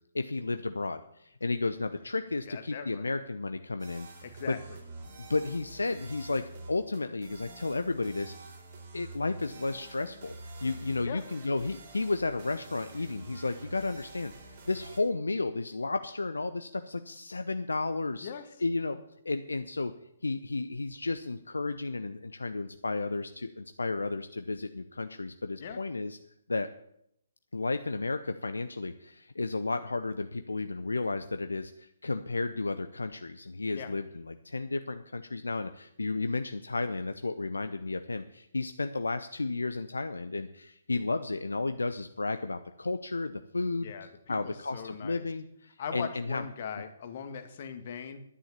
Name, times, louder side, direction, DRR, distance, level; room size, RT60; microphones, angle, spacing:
voice 1, 0.1-4.6 5.2-8.3 8.9-18.3 18.6-19.0 19.2-19.9 20.2-26.2 26.5-26.7 27.5-46.4, left 3 dB, 70° left, 9 dB, 0.7 m, -33 dB
voice 2, 2.5-3.1 4.2-4.8 11.0-11.2 18.2-18.4 25.6-25.8 33.7-33.9 43.8-45.2 45.8-48.2, left 7 dB, 40° left, 7 dB, 1.8 m, -40 dB
sound 1, 3.8-15.0, right 2 dB, 40° right, 4.0 m, -47 dB
11.0 x 10.0 x 7.4 m, 0.76 s
figure-of-eight pair, 130°, 0 cm